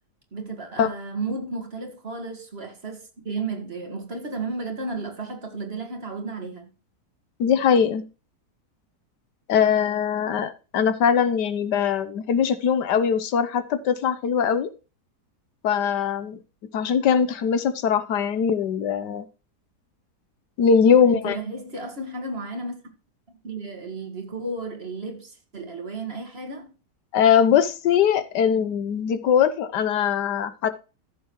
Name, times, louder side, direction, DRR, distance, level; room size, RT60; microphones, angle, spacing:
voice 1, 0.3-6.7 20.9-22.8 23.3-26.7, right 3 dB, 35° right, 2.0 m, -33 dB
voice 2, 7.4-8.0 9.5-14.7 15.6-16.4 16.7-19.2 20.6-21.4 27.1-30.7, left 7 dB, 85° left, 1.5 m, -21 dB
14.0 x 7.0 x 3.0 m
omnidirectional pair, 1.8 m